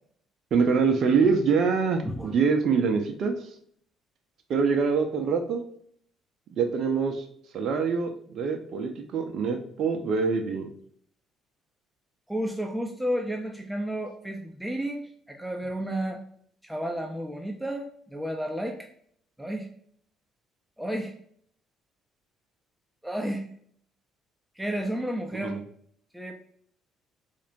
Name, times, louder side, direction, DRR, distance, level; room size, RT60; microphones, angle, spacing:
voice 1, 0.5-3.3 4.5-5.6 6.5-7.3 7.5-10.7 25.3-25.6, right 5 dB, 55° right, 4 dB, 0.6 m, -25 dB
voice 2, 2.0-2.3 12.3-16.2 16.6-18.9 19.4-19.7 20.8-21.1 23.0-23.5 24.6-25.6 26.1-26.3, right 1 dB, 5° right, 3 dB, 0.6 m, -32 dB
4.4 x 2.8 x 2.5 m, 0.62 s
figure-of-eight pair, 50°, 0 cm